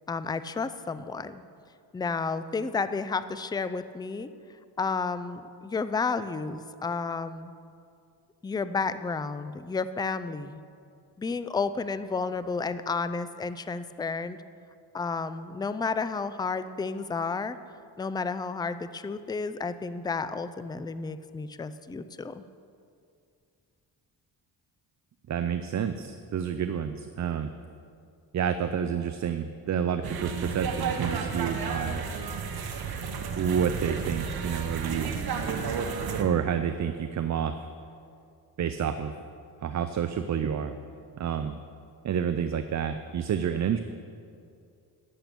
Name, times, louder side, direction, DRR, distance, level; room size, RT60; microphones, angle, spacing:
voice 1, 0.1-1.4 1.9-4.3 4.8-7.5 8.4-10.6 11.2-14.4 14.9-17.6 18.0-22.4, left 4 dB, 10° left, 12 dB, 0.4 m, -31 dB
voice 2, 25.3-27.5 28.3-32.0 33.4-35.1 36.2-37.5 38.6-39.1 39.6-40.7 41.1-41.6 42.0-43.8, right 8 dB, 45° right, 9 dB, 0.6 m, -29 dB
sound 1, 30.0-36.2, right 5 dB, 60° right, 1.3 m, -32 dB
12.0 x 8.8 x 6.8 m, 2.4 s
cardioid pair, 110°, 41 cm